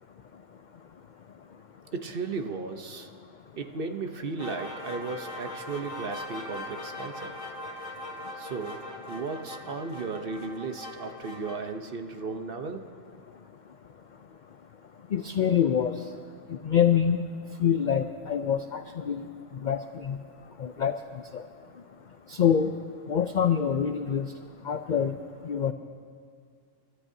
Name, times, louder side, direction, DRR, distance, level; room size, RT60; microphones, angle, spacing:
voice 1, 1.9-3.1 3.6-7.3 8.4-12.9, right 4 dB, 50° right, 6 dB, 0.9 m, -35 dB
sound 1, 4.4-11.6, left 1 dB, 85° left, 2.4 m, -40 dB
voice 2, 15.1-15.9 16.5-17.2 17.6-19.3 19.5-20.2 20.6-21.0 21.3-21.4 22.3-22.7 23.1-24.3 24.6-25.2 25.4-25.7, left 8 dB, 65° left, 8 dB, 0.4 m, -25 dB
30.0 x 13.5 x 2.7 m, 2.2 s
omnidirectional pair, 1.3 m